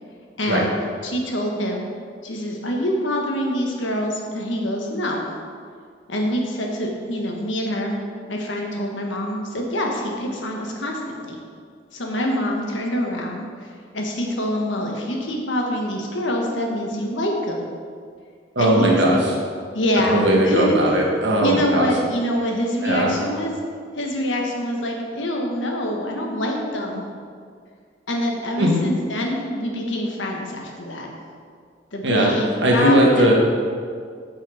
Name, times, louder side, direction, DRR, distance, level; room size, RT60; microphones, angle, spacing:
voice 1, 0.4-0.7 1.0-1.9 2.2-5.3 6.1-7.9 8.3-11.4 11.9-17.6 18.6-19.2 19.7-20.8 21.4-23.5 24.0-27.0 28.1-31.1 31.9-33.3, equal, 85° left, 0 dB, 1.4 m, -25 dB
voice 2, 18.5-19.2 20.1-21.9 22.8-23.1 28.6-28.8 32.0-32.3 32.6-33.3, right 1 dB, 70° right, -2 dB, 1.5 m, -18 dB
8.5 x 5.6 x 5.0 m, 2.1 s
head